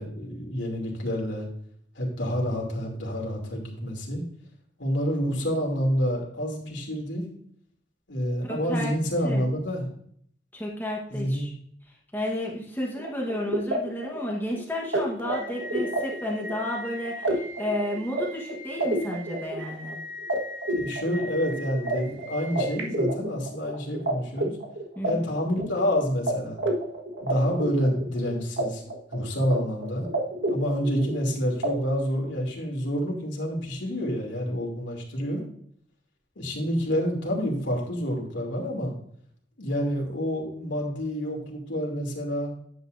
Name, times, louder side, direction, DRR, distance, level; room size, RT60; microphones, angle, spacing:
voice 1, 0.0-1.5 1.9-4.2 4.8-7.3 8.1-9.9 11.1-11.5 20.7-24.5 25.0-26.6 27.2-28.8 29.1-30.1 30.5-35.4 36.4-38.9 39.6-42.5, equal, 90° left, 0 dB, 2.8 m, -28 dB
voice 2, 8.5-8.9 9.2-9.4 10.5-11.5 12.1-20.0 25.0-25.2, left 1 dB, 10° left, -2 dB, 1.3 m, -32 dB
sound 1, 13.0-24.1 24.4-25.9 26.3-26.4 26.6-28.6 28.9-29.6 29.8-31.2 31.6-31.7, right 1 dB, 85° right, 1.5 m, -30 dB
10.0 x 8.6 x 2.6 m, 0.64 s
head